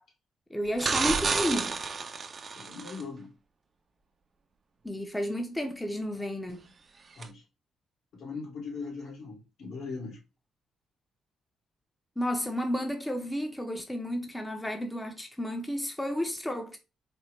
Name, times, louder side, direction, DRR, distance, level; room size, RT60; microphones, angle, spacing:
voice 1, 0.5-1.8 4.8-6.7 12.2-16.8, equal, 10° left, 0.6 m, -32 dB
sound 1, 0.8-3.0 7.2-7.3, right 4 dB, 40° right, 0.4 m, -30 dB
voice 2, 2.6-3.3 7.2-7.4 8.1-10.2, left 4 dB, 75° left, 2.1 m, -39 dB
4.3 x 2.1 x 3.1 m
cardioid pair, 90°, 0 cm